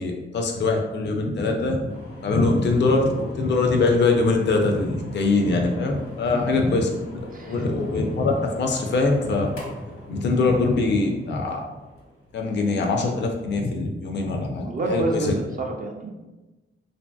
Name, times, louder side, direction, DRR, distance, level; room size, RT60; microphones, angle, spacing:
voice 1, 0.0-1.8 2.2-6.9 7.5-9.5 10.1-11.6 12.3-15.3, left 3 dB, 60° left, 2 dB, 0.4 m, -22 dB
sound 1, 1.9-13.0, equal, 80° left, 0.9 m, -42 dB
voice 2, 7.3-7.6 14.6-16.1, right 2 dB, 45° right, 0 dB, 0.4 m, -28 dB
2.7 x 2.6 x 2.2 m, 1.1 s
cardioid pair, 70°, 21 cm